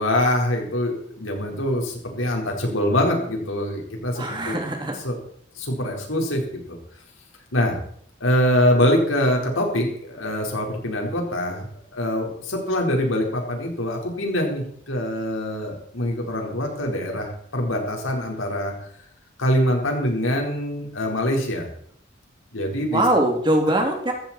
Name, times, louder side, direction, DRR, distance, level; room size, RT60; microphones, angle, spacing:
voice 1, 0.0-4.6 5.0-5.2 5.5-6.8 7.5-7.8 8.2-11.7 11.9-18.7 19.4-21.7 22.5-23.1, left 1 dB, 90° left, 1 dB, 4.6 m, -24 dB
voice 2, 4.2-5.0 22.9-24.1, right 1 dB, 25° right, 2 dB, 2.8 m, -22 dB
15.5 x 14.5 x 4.4 m, 0.63 s
head